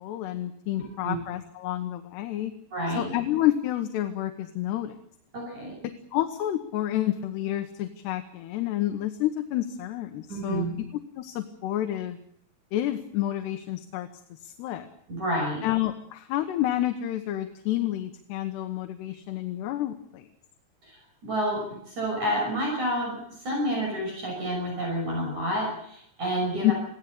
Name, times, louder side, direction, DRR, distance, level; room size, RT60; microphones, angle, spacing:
voice 1, 0.0-2.6 3.0-5.0 6.1-10.7 11.2-12.2 12.7-14.9 15.6-20.3 26.6-26.7, left 13 dB, 80° left, 7 dB, 3.3 m, -29 dB
voice 2, 2.7-3.1 5.3-5.7 10.3-10.7 15.1-15.6 20.8-26.7, equal, 45° right, 0 dB, 7.0 m, -29 dB
23.0 x 16.5 x 8.5 m, 0.70 s
omnidirectional pair, 4.8 m